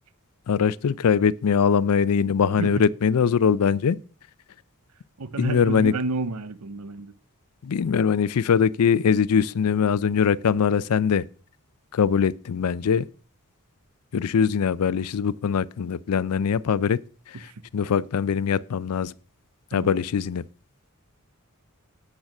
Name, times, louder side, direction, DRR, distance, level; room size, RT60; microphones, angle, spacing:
voice 1, 0.5-4.0 5.4-5.9 7.6-11.2 11.9-13.1 14.1-17.0 17.7-19.1 19.7-20.4, left 6 dB, 80° left, 0.4 m, -22 dB
voice 2, 5.2-7.1 17.5-17.6 19.7-19.9, right 3 dB, 85° right, 0.8 m, -30 dB
8.6 x 6.4 x 6.0 m
head